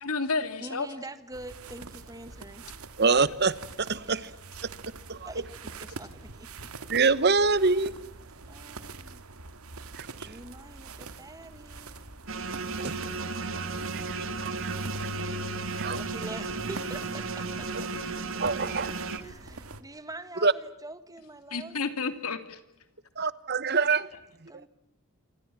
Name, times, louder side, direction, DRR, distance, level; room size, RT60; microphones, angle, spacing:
voice 1, 0.0-0.9 21.5-22.6, left 4 dB, 90° left, 2.8 m, -30 dB
voice 2, 0.6-2.7 4.1-4.3 5.2-6.7 8.5-9.2 10.3-12.0 15.9-17.9 19.0-21.8 24.5-24.7, right 2 dB, 15° right, 1.6 m, -44 dB
sound 1, 1.3-19.8, right 2 dB, 85° right, 2.0 m, -43 dB
voice 3, 3.0-3.5 3.8-4.3 5.1-5.3 6.9-7.9 10.0-10.4 12.8-14.8 15.8-16.0 18.4-19.2 20.4-20.5 23.2-24.1 24.4-24.5, right 4 dB, 50° right, 1.1 m, -26 dB
sound 2, 12.3-19.2, right 4 dB, 65° right, 2.7 m, -34 dB
28.0 x 25.5 x 7.3 m
head